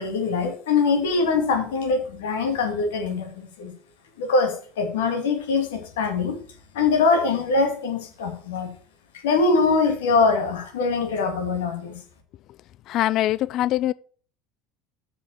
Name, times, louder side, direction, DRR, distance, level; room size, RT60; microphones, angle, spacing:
voice 1, 0.0-3.7 4.2-6.4 6.7-8.7 9.2-12.0, left 4 dB, 75° left, 2.2 m, -23 dB
voice 2, 12.9-13.9, left 14 dB, 55° left, 0.3 m, -23 dB
7.0 x 5.5 x 6.3 m
hypercardioid pair, 75°, 0 cm